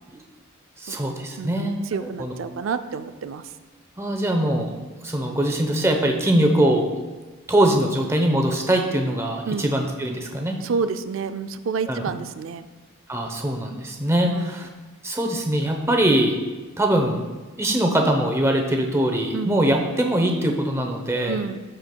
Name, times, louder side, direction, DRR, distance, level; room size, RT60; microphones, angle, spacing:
voice 1, 0.8-2.3 4.0-4.7 5.0-6.9 7.5-10.6 11.9-12.0 13.1-14.7 15.0-16.3 16.8-17.2 17.6-21.4, right 1 dB, 15° right, 3 dB, 0.7 m, -22 dB
voice 2, 1.4-3.5 9.5-9.7 10.6-12.7 14.2-14.7 19.3-19.6 21.3-21.6, right 5 dB, 65° right, 11 dB, 0.4 m, -29 dB
13.5 x 4.6 x 2.2 m, 1.3 s
head